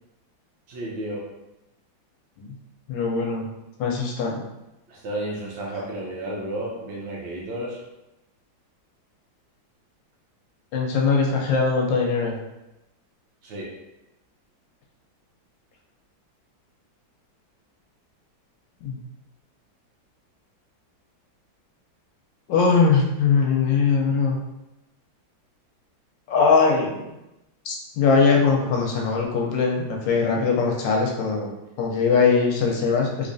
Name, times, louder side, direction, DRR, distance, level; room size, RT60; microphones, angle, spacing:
voice 1, 0.7-1.2 4.9-7.8 13.4-13.7, right 1 dB, 75° right, -3 dB, 1.6 m, -32 dB
voice 2, 2.9-3.5 3.8-4.4 10.7-12.4 18.8-19.0 22.5-24.4 26.3-27.1 27.7-31.5 31.8-33.3, left 5 dB, 75° left, 0 dB, 1.3 m, -21 dB
3.5 x 3.1 x 2.6 m, 0.94 s
omnidirectional pair, 2.2 m